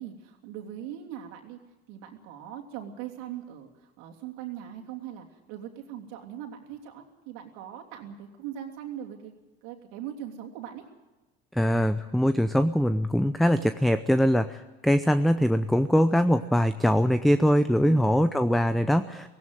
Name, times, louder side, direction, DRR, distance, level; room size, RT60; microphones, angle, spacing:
voice 1, 0.0-1.6 1.9-9.3 9.6-10.8 17.8-18.2, right 10 dB, 70° right, 2 dB, 3.1 m, -40 dB
voice 2, 11.5-19.3, equal, ahead, 11 dB, 0.6 m, -22 dB
17.0 x 16.5 x 9.2 m, 1.1 s
hypercardioid pair, 80°, 30 cm